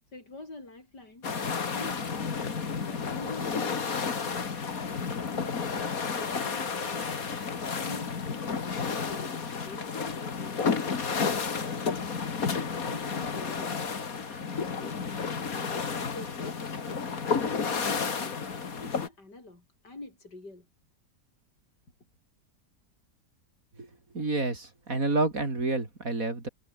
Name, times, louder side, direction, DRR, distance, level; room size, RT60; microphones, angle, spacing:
voice 1, 0.1-1.3 1.7-4.1 5.1-5.8 6.1-7.0 7.3-10.6 11.1-11.7 12.7-13.8 14.3-15.2 15.5-18.4 18.8-20.7, left 2 dB, 80° left, 7.1 m, -47 dB
sound 1, 1.2-19.1, left 5 dB, 55° left, 2.4 m, -31 dB
voice 2, 24.1-26.5, right 2 dB, 55° right, 4.4 m, -29 dB
omnidirectional pair, 1.8 m